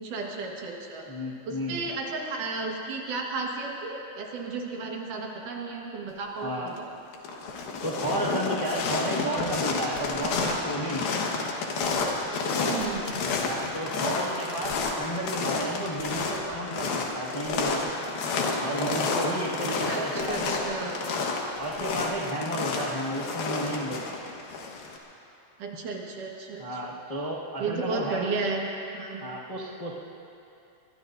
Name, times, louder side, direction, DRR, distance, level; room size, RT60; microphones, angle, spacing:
voice 1, 0.0-1.1 1.5-6.9 12.6-13.3 19.9-21.0 25.6-26.9 27.6-29.2, right 3 dB, 65° right, -1 dB, 3.0 m, -33 dB
voice 2, 1.1-1.9 6.4-6.8 7.8-11.1 13.4-18.2 18.6-20.6 21.6-24.0 26.6-28.3 29.2-29.9, right 1 dB, 40° left, -7 dB, 0.5 m, -32 dB
sound 1, 6.4-6.8 7.1-25.0, left 4 dB, 80° left, 3.2 m, -30 dB
23.5 x 22.5 x 2.7 m, 2.8 s
omnidirectional pair, 4.1 m